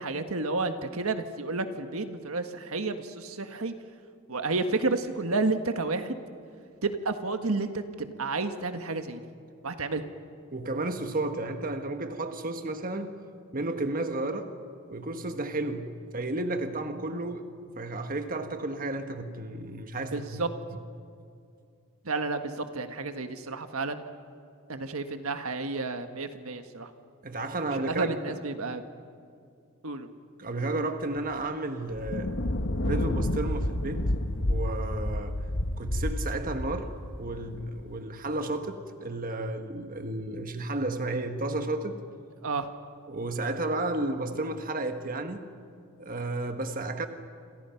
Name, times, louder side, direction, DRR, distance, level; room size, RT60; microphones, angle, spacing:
voice 1, 0.0-3.7 4.3-6.2 6.8-9.2 9.6-10.1 20.1-20.5 22.0-24.0 24.7-26.9 27.7-28.9 29.8-30.1 42.4-42.7, right 3 dB, 75° right, 1.6 m, -31 dB
voice 2, 10.5-13.2 13.5-14.5 14.9-20.8 27.2-28.1 30.4-32.3 32.8-34.1 34.3-35.4 35.8-36.9 37.2-41.9 43.1-45.4 46.0-47.1, right 2 dB, 40° right, 1.4 m, -32 dB
sound 1, 31.3-31.4 31.9-37.9, left 1 dB, 60° left, 1.3 m, -30 dB
29.0 x 27.0 x 5.9 m
head